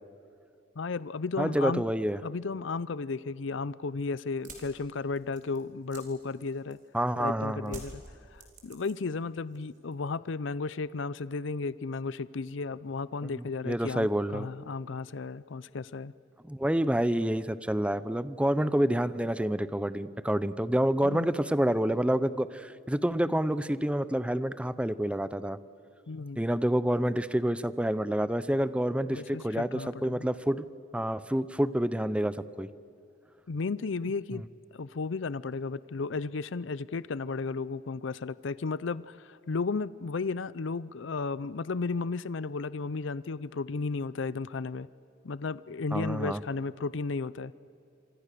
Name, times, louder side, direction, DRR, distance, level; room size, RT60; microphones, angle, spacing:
voice 1, 0.8-1.9 2.2-6.8 7.2-8.0 8.3-16.1 21.0-21.3 26.1-26.4 29.1-30.3 33.5-34.4 34.7-44.9 45.2-47.5, left 4 dB, 70° left, 18 dB, 0.5 m, -34 dB
voice 2, 1.4-2.2 6.9-7.8 13.6-14.5 16.4-25.6 26.4-30.7 30.9-32.7 34.3-34.4 45.9-46.4, right 1 dB, 5° right, 16 dB, 0.6 m, -28 dB
sound 1, 4.3-7.0 7.6-9.2 9.5-10.1, right 3 dB, 40° right, 4.7 m, -48 dB
27.0 x 26.0 x 6.7 m, 2.7 s
head